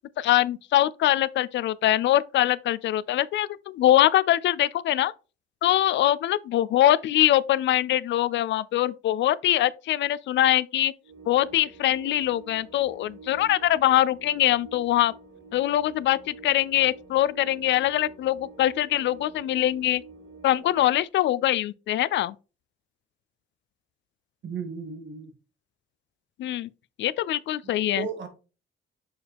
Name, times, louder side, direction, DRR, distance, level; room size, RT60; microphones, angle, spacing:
voice 1, 0.2-5.1 5.6-10.9 11.3-15.1 15.5-20.0 20.4-22.3 26.4-26.7 27.0-28.0, left 13 dB, 70° left, 0.4 m, -23 dB
sound 1, 11.0-21.0, right 3 dB, 90° right, 2.8 m, -47 dB
voice 2, 24.4-25.3 27.6-28.3, right 6 dB, 65° right, 1.7 m, -35 dB
6.5 x 4.7 x 3.4 m
cardioid pair, 90°, 20 cm